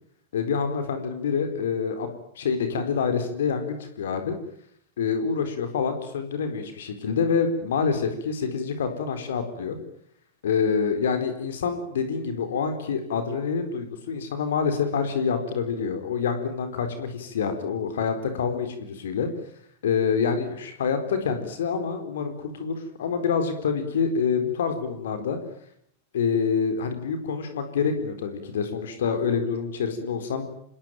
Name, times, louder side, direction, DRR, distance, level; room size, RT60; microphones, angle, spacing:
voice 1, 0.3-2.1 2.4-4.4 5.0-9.8 10.4-19.3 19.8-25.4 26.1-30.5, left 6 dB, 60° left, 8 dB, 4.2 m, -26 dB
27.0 x 20.5 x 9.1 m, 0.69 s
figure-of-eight pair, 90°, 0 cm